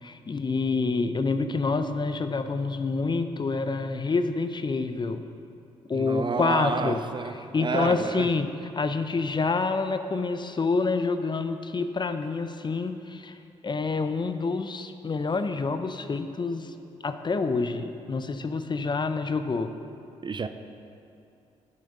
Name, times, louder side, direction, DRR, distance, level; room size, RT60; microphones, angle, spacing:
voice 1, 0.0-5.2 5.9-7.0 7.5-13.4 13.6-16.7 17.0-19.7, left 4 dB, 35° left, 9 dB, 0.6 m, -27 dB
voice 2, 5.9-8.3 20.2-20.5, right 4 dB, 35° right, 9 dB, 0.6 m, -30 dB
10.5 x 5.9 x 5.4 m, 2.7 s
supercardioid pair, 50°, 14 cm